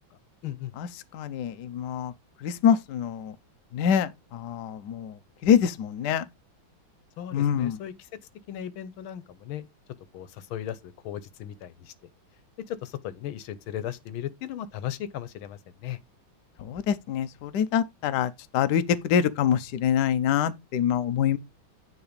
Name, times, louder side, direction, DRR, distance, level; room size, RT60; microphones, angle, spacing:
voice 1, 1.1-2.1 2.4-3.3 3.7-6.2 7.3-7.8 16.6-21.4, left 8 dB, 65° left, 1.2 m, -25 dB
voice 2, 7.2-8.1 8.5-9.7 10.1-11.9 12.7-16.0, left 11 dB, 85° left, 1.7 m, -36 dB
9.8 x 3.9 x 5.0 m
omnidirectional pair, 2.2 m